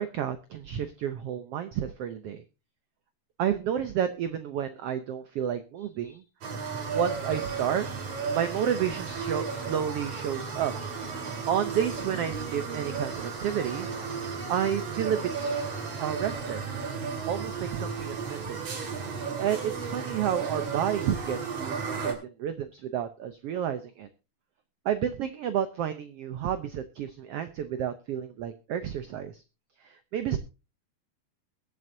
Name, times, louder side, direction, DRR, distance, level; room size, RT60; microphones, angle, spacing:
voice 1, 0.0-2.4 3.4-6.2 6.9-7.9 8.3-10.7 11.5-13.9 14.5-15.6 16.0-16.6 17.3-18.6 19.4-24.1 24.8-29.4 29.8-30.4, right 9 dB, 75° right, 10 dB, 1.4 m, -31 dB
sound 1, 6.4-22.1, right 5 dB, 50° right, 3.2 m, -34 dB
22.0 x 7.8 x 2.7 m, 0.31 s
omnidirectional pair, 3.7 m